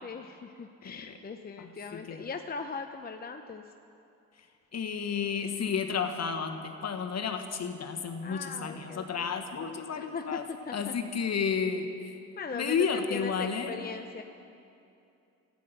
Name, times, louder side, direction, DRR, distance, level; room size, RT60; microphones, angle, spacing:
voice 1, 0.0-3.7 8.2-9.3 10.0-10.9 12.4-14.2, left 5 dB, 30° left, 5 dB, 0.7 m, -40 dB
voice 2, 0.8-1.1 1.6-2.3 4.7-10.5 10.7-12.2 12.5-13.8, left 6 dB, 55° left, 6 dB, 1.4 m, -32 dB
13.5 x 8.6 x 9.1 m, 2.7 s
supercardioid pair, 65°, 32 cm